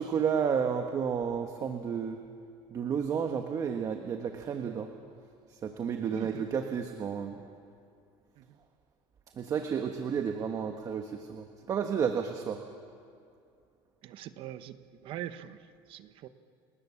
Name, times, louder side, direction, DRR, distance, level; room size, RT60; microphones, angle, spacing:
voice 1, 0.0-2.2 2.7-4.9 5.5-7.4 9.3-12.6, right 7 dB, 30° right, 5 dB, 1.3 m, -31 dB
voice 2, 6.1-6.5 8.4-8.6 14.0-14.8 15.0-16.3, right 12 dB, 50° right, 11 dB, 1.1 m, -42 dB
30.0 x 18.5 x 7.2 m, 2.4 s
cardioid pair, 150°, 11 cm